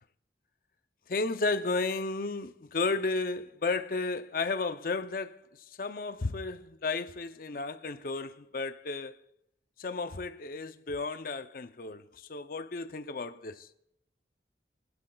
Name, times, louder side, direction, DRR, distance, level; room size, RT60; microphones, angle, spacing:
voice 1, 1.1-5.4 5.8-9.1 9.8-12.0 12.3-13.7, left 3 dB, 50° left, 0.5 m, -33 dB
20.0 x 11.5 x 2.3 m
head